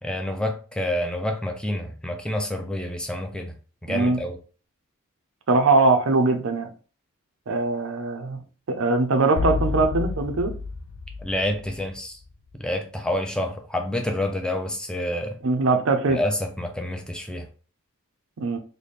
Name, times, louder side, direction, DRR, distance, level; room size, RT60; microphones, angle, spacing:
voice 1, 0.0-3.5 3.8-4.4 11.2-12.2 12.6-15.4 16.1-17.5, left 1 dB, 5° left, 0.4 m, -28 dB
voice 2, 3.9-4.2 5.5-6.7 7.5-8.4 8.7-10.5 15.4-16.2 18.4-18.6, right 3 dB, 65° right, 0.5 m, -21 dB
sound 1, 9.4-12.2, left 4 dB, 75° left, 0.4 m, -30 dB
3.3 x 2.1 x 4.0 m
head